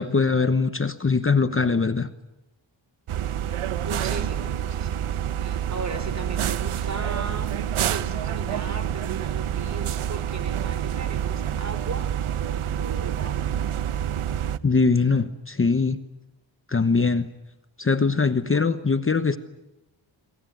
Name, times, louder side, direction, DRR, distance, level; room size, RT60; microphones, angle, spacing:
voice 1, 0.0-2.1 14.6-16.0 16.7-17.3 17.8-19.4, left 4 dB, 25° left, 11 dB, 1.1 m, -22 dB
sound 1, 3.1-14.6, right 10 dB, 85° right, 1.1 m, -27 dB
voice 2, 3.8-5.1 5.4-7.6 7.9-12.1 12.4-13.4 18.5-18.7, right 3 dB, 35° right, 12 dB, 3.7 m, -37 dB
26.5 x 24.0 x 9.4 m, 0.95 s
wide cardioid pair, 115°, 49 cm